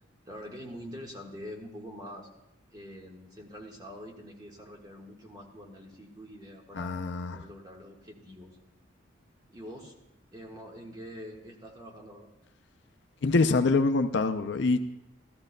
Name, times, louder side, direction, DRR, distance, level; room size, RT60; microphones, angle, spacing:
voice 1, 0.3-2.3 2.7-6.9 7.3-8.6 9.5-9.9 10.3-12.3, equal, 20° right, 0 dB, 1.5 m, -45 dB
voice 2, 6.7-7.4 13.2-14.8, left 3 dB, 60° left, 8 dB, 0.5 m, -25 dB
15.5 x 13.0 x 2.2 m, 0.87 s
head